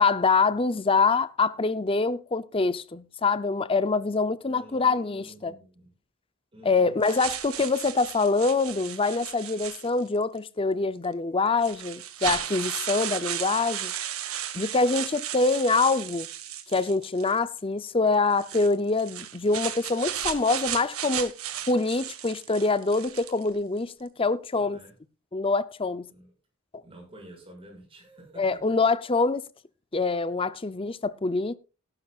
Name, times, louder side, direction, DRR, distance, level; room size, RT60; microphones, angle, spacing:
voice 1, 0.0-5.5 6.6-13.9 14.5-16.3 16.7-21.3 21.7-24.8 25.3-26.1 28.4-29.4 29.9-31.6, left 3 dB, 25° left, 0.6 m, -25 dB
voice 2, 4.4-5.9 6.5-7.0 24.5-24.9 26.1-26.3 26.8-28.8, right 1 dB, 25° right, 6.8 m, -49 dB
sound 1, 7.0-10.2 11.0-11.1 11.6-17.4 18.3-23.5, right 10 dB, 90° right, 1.6 m, -35 dB
18.0 x 11.5 x 2.4 m
head